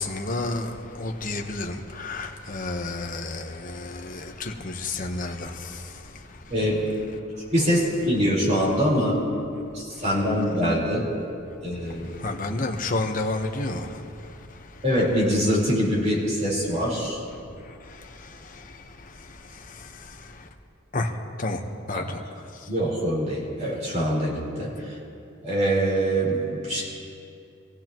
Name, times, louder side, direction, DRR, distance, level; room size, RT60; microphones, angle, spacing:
voice 1, 0.0-6.1 12.1-14.0 17.9-20.5 20.9-21.1 21.4-21.6 21.9-22.2, left 2 dB, 35° left, 3 dB, 1.0 m, -31 dB
voice 2, 6.5-6.9 7.5-9.2 9.7-11.0 11.6-12.1 14.8-17.2 21.9-22.1 22.7-24.9 25.4-26.8, equal, 30° right, -5 dB, 4.3 m, -24 dB
25.5 x 15.5 x 3.0 m, 2.5 s
head